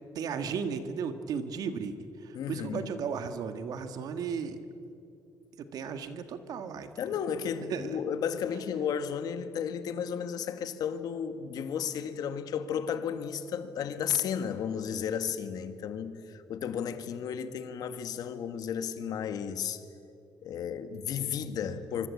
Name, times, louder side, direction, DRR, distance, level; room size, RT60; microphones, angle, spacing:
voice 1, 0.1-1.9 2.2-4.6 5.6-7.2 7.7-8.0, right 6 dB, 65° right, 9 dB, 1.8 m, -35 dB
voice 2, 2.3-2.9 7.0-19.8 20.4-22.1, left 8 dB, 65° left, 9 dB, 1.8 m, -33 dB
25.5 x 24.5 x 8.5 m, 2.7 s
cardioid pair, 155°, 7 cm